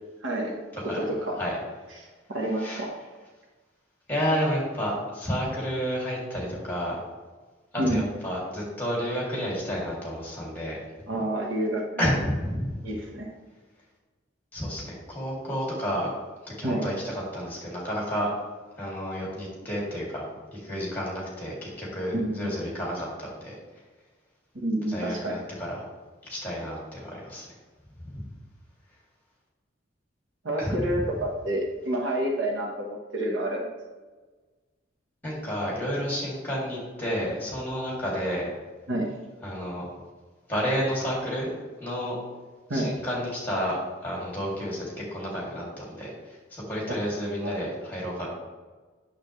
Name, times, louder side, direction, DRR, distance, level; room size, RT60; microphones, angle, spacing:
voice 1, 0.2-0.5 0.8-1.4 1.9-2.9 7.8-8.0 11.1-12.1 12.8-13.3 16.6-16.9 22.1-22.5 24.5-25.4 30.4-33.7 38.9-39.2 42.7-42.9 47.4-47.6, right 1 dB, 75° right, 0 dB, 1.3 m, -29 dB
voice 2, 4.1-7.0 7.7-10.8 12.0-12.8 14.5-16.1 16.6-18.3 18.8-20.2 20.5-23.5 24.9-25.8 26.3-27.5 28.0-28.2 30.6-31.0 35.2-38.5 39.4-39.9 40.5-41.5 41.8-42.1 42.7-46.1 46.5-48.3, equal, 10° left, -4 dB, 2.7 m, -30 dB
8.8 x 7.1 x 3.3 m, 1.3 s
head